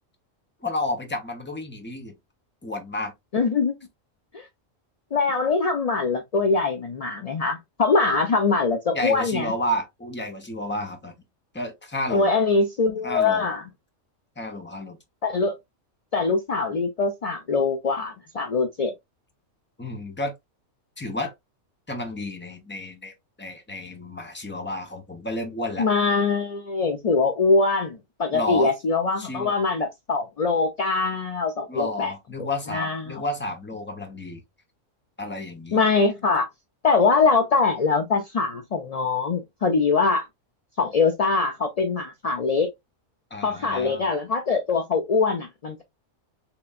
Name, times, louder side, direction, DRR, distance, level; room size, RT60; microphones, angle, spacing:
voice 1, 0.6-2.2 2.6-3.1 8.9-11.1 11.5-12.3 13.0-13.5 14.4-15.0 19.8-20.3 21.0-21.3 21.9-23.1 23.4-25.9 28.3-28.7 29.2-29.5 31.7-34.4 35.2-35.9 43.3-44.1, left 1 dB, 10° left, 0.6 m, -31 dB
voice 2, 3.3-3.8 4.3-4.5 5.1-9.5 12.1-13.6 15.2-15.6 16.1-18.9 25.8-32.1 32.4-33.2 35.7-36.5 36.8-40.3 40.8-42.7 43.4-45.8, left 4 dB, 60° left, 0.4 m, -23 dB
3.7 x 3.3 x 2.3 m
omnidirectional pair, 1.3 m